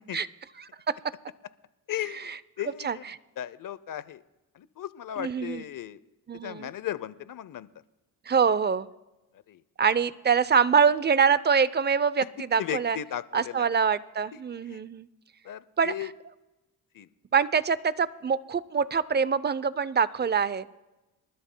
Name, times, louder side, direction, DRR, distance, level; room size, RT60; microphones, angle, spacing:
voice 1, 1.9-3.1 3.4-4.2 4.5-6.0 6.3-7.7 9.5-9.6 12.6-13.7 14.6-14.8 15.4-16.1 16.9-17.1, left 11 dB, 55° left, 17 dB, 0.7 m, -36 dB
voice 2, 5.2-5.6 6.3-6.7 8.3-8.9 9.8-13.0 13.3-15.1 15.8-15.9 17.3-20.7, right 6 dB, 25° right, 17 dB, 0.6 m, -24 dB
26.0 x 12.5 x 2.2 m, 1.0 s
cardioid pair, 60°, 38 cm